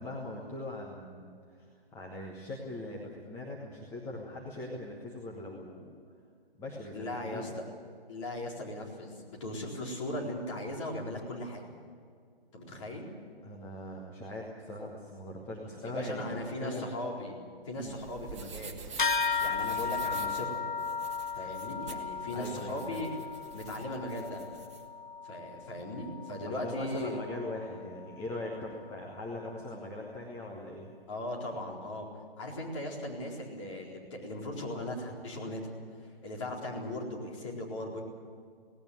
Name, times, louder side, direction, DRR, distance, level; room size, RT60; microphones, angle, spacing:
voice 1, 0.0-5.9 6.6-7.5 12.7-12.8 13.4-16.9 17.8-18.0 22.3-23.0 26.4-30.9, left 2 dB, 10° left, -3 dB, 1.3 m, -41 dB
voice 2, 6.9-7.5 8.1-11.6 12.5-13.1 15.8-17.4 17.6-18.8 19.4-20.6 21.4-23.1 23.5-24.4 25.2-27.2 31.1-32.1 32.4-35.7 36.2-38.0, left 1 dB, 30° left, -2 dB, 4.2 m, -38 dB
sound 1, 17.7-24.8, right 5 dB, 30° right, 1.8 m, -47 dB
sound 2, 19.0-28.8, left 5 dB, 55° left, 1.1 m, -36 dB
18.0 x 17.5 x 9.5 m, 2.1 s
figure-of-eight pair, 140°, 30 cm